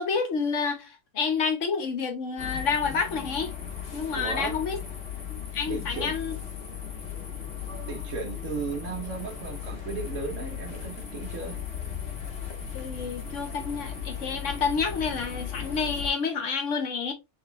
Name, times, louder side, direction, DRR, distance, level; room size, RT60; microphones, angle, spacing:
voice 1, 0.0-3.5 3.9-4.8 5.3-6.3 12.7-17.1, left 5 dB, 80° left, 1.5 m, -29 dB
sound 1, 2.4-16.1, left 8 dB, 60° left, 1.6 m, -37 dB
voice 2, 4.1-4.6 5.7-6.1 7.8-11.6, right 4 dB, 90° right, 1.3 m, -35 dB
3.9 x 3.7 x 3.3 m
omnidirectional pair, 1.3 m